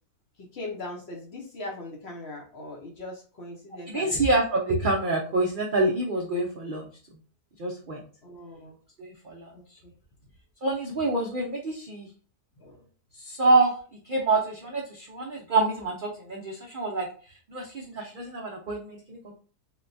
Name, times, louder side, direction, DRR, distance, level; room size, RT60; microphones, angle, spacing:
voice 1, 0.4-4.3 8.2-8.7 9.5-9.9 12.6-12.8, left 2 dB, 55° left, -2 dB, 0.8 m, -40 dB
voice 2, 3.9-6.8 7.6-8.0 9.0-9.5 10.6-12.1 13.2-13.8 14.0-19.3, right 2 dB, 75° right, -1 dB, 0.4 m, -27 dB
3.9 x 2.2 x 2.5 m, 0.39 s
omnidirectional pair, 1.7 m